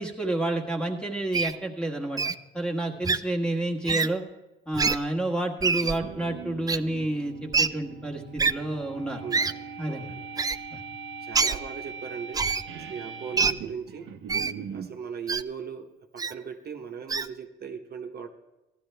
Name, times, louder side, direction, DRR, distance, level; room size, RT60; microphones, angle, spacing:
voice 1, 0.0-2.2 2.5-4.2 4.7-9.2 9.8-10.1 10.7-10.8, right 1 dB, 5° left, 2 dB, 1.5 m, -29 dB
Wild animals, 1.3-1.5 2.2-2.4 3.0-3.2 3.9-4.1 4.7-5.0 5.6-6.0 6.7-6.8 7.5-7.7 8.4-8.5 9.3-9.5 10.4-10.6 11.3-11.6 12.3-12.6 13.4-13.5 14.3-14.5 15.3-15.4 16.2-16.3 17.1-17.3, right 4 dB, 20° right, 0.3 m, -25 dB
sound 1, 5.8-15.0, right 6 dB, 75° right, 0.8 m, -41 dB
voice 2, 9.2-9.5 9.9-10.2 11.2-12.5 12.7-14.1 14.7-18.3, right 6 dB, 55° right, 3 dB, 1.1 m, -38 dB
15.0 x 11.5 x 3.4 m, 1.0 s
cardioid pair, 90°, 20 cm